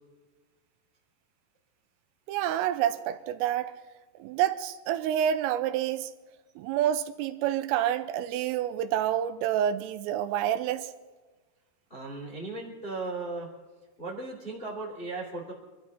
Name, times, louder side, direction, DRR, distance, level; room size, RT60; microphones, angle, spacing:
voice 1, 2.3-3.7 4.2-6.1 6.6-10.9, right 11 dB, 85° right, 3.3 m, -28 dB
voice 2, 11.9-13.5 14.0-15.5, right 3 dB, 20° left, 1.7 m, -36 dB
25.0 x 12.5 x 4.1 m
omnidirectional pair, 5.9 m